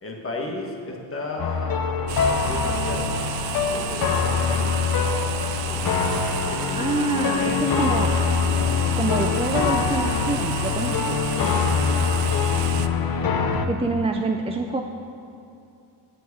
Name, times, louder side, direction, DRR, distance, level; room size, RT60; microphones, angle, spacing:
voice 1, 0.0-3.0 3.6-5.2 5.6-7.6 11.3-12.0, left 2 dB, 30° left, 0 dB, 1.7 m, -35 dB
sound 1, 1.4-13.7, left 6 dB, 50° left, 0.9 m, -24 dB
sound 2, 2.1-12.9, right 11 dB, 70° right, 0.6 m, -32 dB
voice 2, 6.7-8.1 9.0-11.2 13.7-14.8, right 3 dB, 15° right, 2 dB, 0.4 m, -26 dB
9.3 x 8.0 x 8.2 m, 2.6 s
cardioid pair, 145°, 45 cm